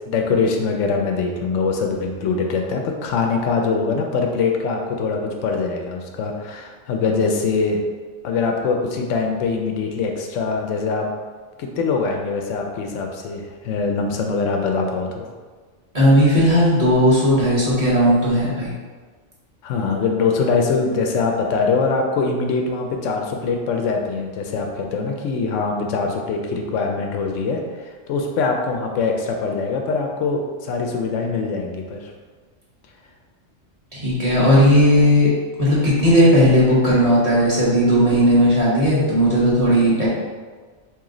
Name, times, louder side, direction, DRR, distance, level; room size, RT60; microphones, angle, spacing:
voice 1, 0.0-7.8 8.2-11.1 11.6-15.3 19.6-32.1, left 4 dB, 85° left, 2 dB, 0.9 m, -23 dB
voice 2, 15.9-18.7 33.9-35.3 35.6-40.1, equal, 35° right, -7 dB, 1.0 m, -16 dB
3.0 x 3.0 x 3.7 m, 1.4 s
omnidirectional pair, 1.2 m